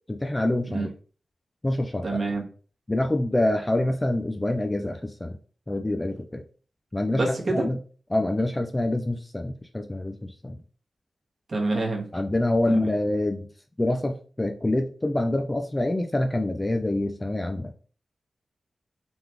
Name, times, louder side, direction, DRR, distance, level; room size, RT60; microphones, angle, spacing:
voice 1, 0.1-0.9 1.6-2.0 2.9-5.4 5.7-6.4 6.9-7.2 7.5-7.8 8.1-10.6 12.1-13.5 13.8-17.7, left 1 dB, 15° left, 5 dB, 0.4 m, -26 dB
voice 2, 2.0-2.4 7.1-7.7 11.5-12.1 12.7-12.9, right 2 dB, 40° right, -2 dB, 1.4 m, -27 dB
3.8 x 3.5 x 3.0 m, 0.40 s
wide cardioid pair, 120°, 0 cm